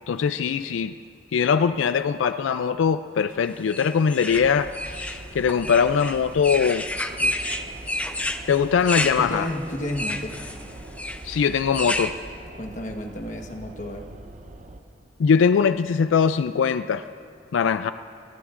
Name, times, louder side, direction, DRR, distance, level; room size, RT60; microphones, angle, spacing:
voice 1, 0.1-0.9 1.3-6.9 7.2-7.5 8.5-9.5 11.2-12.2 15.2-17.1 17.5-17.9, left 6 dB, 85° left, 11 dB, 0.4 m, -22 dB
sound 1, 3.7-12.1, left 1 dB, 5° left, 0.5 m, -30 dB
sound 2, 4.3-14.8, right 1 dB, 40° right, 0.8 m, -43 dB
voice 2, 9.2-10.4 12.5-14.1, left 1 dB, 40° left, 3 dB, 1.2 m, -32 dB
29.5 x 18.0 x 2.5 m, 2.5 s
head